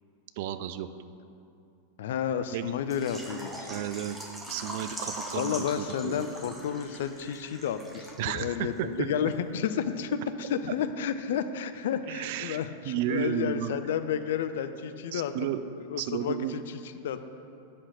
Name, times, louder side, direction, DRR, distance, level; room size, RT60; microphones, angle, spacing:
voice 1, 0.4-0.9 2.5-2.7 3.7-4.2 4.5-6.3 8.2-8.9 9.2-9.3 12.1-12.6 12.8-13.8 15.1-15.7 16.0-16.5, right 10 dB, 50° right, 11 dB, 0.4 m, -33 dB
voice 2, 2.0-3.7 5.3-15.3 15.9-16.6 17.0-17.2, left 8 dB, 55° left, 9 dB, 0.4 m, -31 dB
Water / Liquid, 2.9-8.5 8.8-8.9 9.3-9.4, right 1 dB, 10° right, 1.1 m, -41 dB
8.4 x 5.6 x 6.5 m, 2.5 s
figure-of-eight pair, 90°, 0 cm